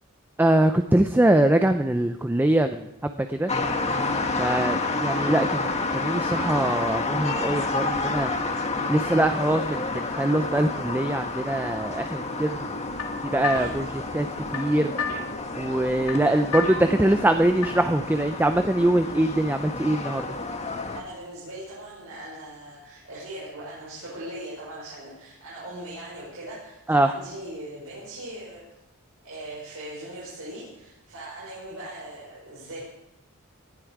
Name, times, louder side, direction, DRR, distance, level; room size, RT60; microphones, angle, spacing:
voice 1, 0.4-3.5 4.4-5.7 5.9-8.3 8.9-12.8 13.2-14.9 15.5-20.3 26.9-27.1, right 1 dB, 10° right, 7 dB, 0.5 m, -23 dB
sound 1, 3.5-21.0, left 3 dB, 30° left, 1.4 m, -30 dB
voice 2, 4.3-4.6 13.5-13.9 20.9-28.6 29.2-32.8, right 1 dB, 75° right, -7 dB, 5.9 m, -40 dB
sound 2, 12.6-18.0, left 4 dB, 80° left, 1.9 m, -35 dB
19.0 x 11.5 x 4.8 m, 0.87 s
head